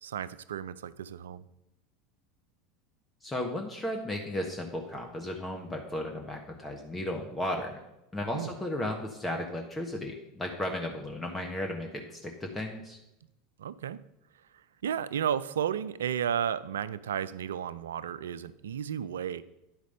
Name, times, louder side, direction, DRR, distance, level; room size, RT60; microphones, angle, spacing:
voice 1, 0.0-1.4 8.3-8.5 13.6-14.0 14.8-19.4, right 9 dB, 80° right, 16 dB, 0.4 m, -33 dB
voice 2, 3.2-7.8 8.1-13.0, left 1 dB, 15° left, 2 dB, 1.3 m, -35 dB
10.0 x 5.0 x 5.3 m, 0.89 s
hypercardioid pair, 85°, 0 cm